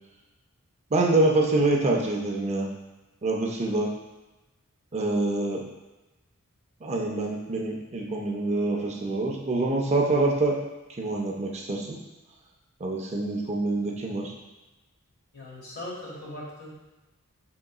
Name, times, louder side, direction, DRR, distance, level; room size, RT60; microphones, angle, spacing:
voice 1, 0.9-2.7 3.2-3.9 4.9-5.6 6.8-10.6 11.0-12.0 12.8-14.3, right 2 dB, 30° right, -1 dB, 0.5 m, -25 dB
voice 2, 15.3-16.7, left 1 dB, 50° left, -5 dB, 1.5 m, -39 dB
5.7 x 3.7 x 2.3 m, 1.1 s
head